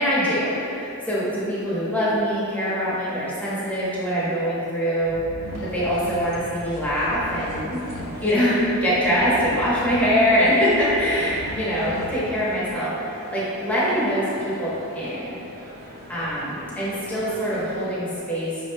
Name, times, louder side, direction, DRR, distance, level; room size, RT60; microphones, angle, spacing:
voice 1, 0.0-5.2 5.7-7.8 8.2-14.2 14.6-15.4 16.1-18.5, equal, 5° left, -10 dB, 0.9 m, -23 dB
sound 1, 5.0-12.7, left 1 dB, 70° left, 0.4 m, -38 dB
sound 2, 5.4-17.9, right 1 dB, 45° right, 0.5 m, -42 dB
5.8 x 2.1 x 3.3 m, 2.9 s
head